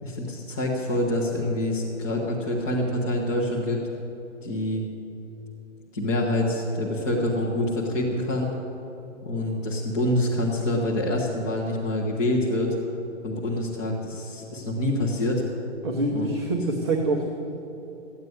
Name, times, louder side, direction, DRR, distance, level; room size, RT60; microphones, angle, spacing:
voice 1, 0.0-3.8 4.4-4.8 5.9-8.5 9.2-12.7 13.2-15.4 16.1-16.3, left 1 dB, 15° left, -5 dB, 0.8 m, -26 dB
voice 2, 15.8-17.5, right 2 dB, 20° right, 0 dB, 0.7 m, -26 dB
14.5 x 9.3 x 9.4 m, 3.0 s
hypercardioid pair, 170°, 38 cm